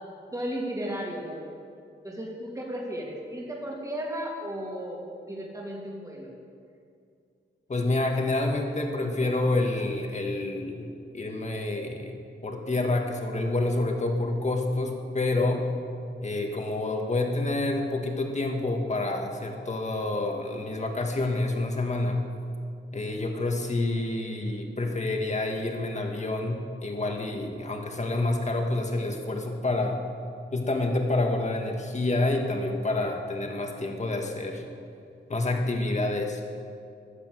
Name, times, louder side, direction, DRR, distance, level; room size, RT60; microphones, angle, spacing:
voice 1, 0.3-1.4 2.0-6.3, equal, 15° right, -3 dB, 2.7 m, -34 dB
voice 2, 7.7-10.9 11.1-12.1 12.4-15.7 16.2-22.2 22.9-30.0 30.5-34.6 35.3-36.4, left 2 dB, 35° left, 2 dB, 1.9 m, -28 dB
15.0 x 12.0 x 7.9 m, 2.4 s
wide cardioid pair, 145°, 20 cm